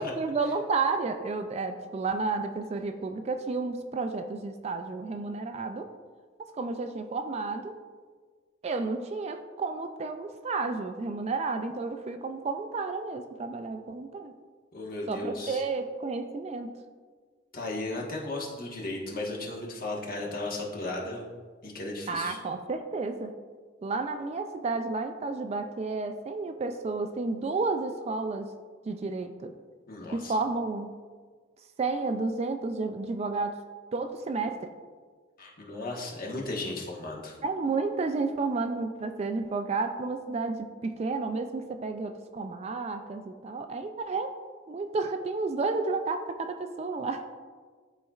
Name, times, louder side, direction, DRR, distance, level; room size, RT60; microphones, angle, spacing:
voice 1, 0.0-5.9 6.6-7.8 8.6-14.3 15.1-16.8 22.1-23.3 23.8-28.5 28.9-29.5 30.1-30.9 31.8-33.6 33.9-34.7 37.4-44.3 44.7-47.4, right 3 dB, 35° right, 7 dB, 0.3 m, -31 dB
voice 2, 14.7-15.6 17.5-21.2 21.6-22.4 29.9-30.3 35.4-37.3, left 2 dB, 50° left, -2 dB, 1.2 m, -35 dB
11.5 x 4.1 x 2.4 m, 1.5 s
head